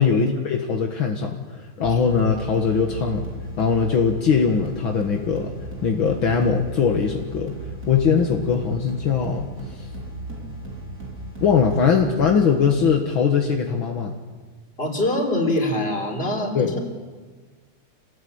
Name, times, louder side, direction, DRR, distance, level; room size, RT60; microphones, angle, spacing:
voice 1, 0.0-3.2 3.6-5.5 5.8-7.6 7.9-9.8 11.4-14.1 16.5-16.8, left 6 dB, 70° left, 2 dB, 2.4 m, -21 dB
sound 1, 1.8-13.3, right 2 dB, 45° right, 4.0 m, -36 dB
voice 2, 14.8-16.8, left 1 dB, 25° left, 1 dB, 4.4 m, -24 dB
27.5 x 19.0 x 8.8 m, 1.4 s
omnidirectional pair, 2.4 m